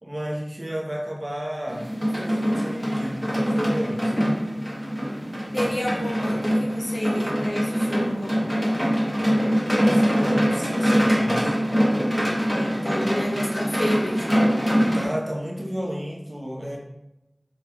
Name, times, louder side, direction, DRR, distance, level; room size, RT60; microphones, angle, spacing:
voice 1, 0.0-4.2 9.7-11.6 14.9-16.8, equal, 35° right, -1 dB, 0.8 m, -32 dB
sound 1, 1.7-15.0, equal, 5° left, 1.1 m, -23 dB
voice 2, 5.5-8.8 12.5-14.5, equal, 80° left, -3 dB, 1.0 m, -30 dB
4.0 x 3.0 x 3.4 m, 0.89 s
wide cardioid pair, 45°, 0 cm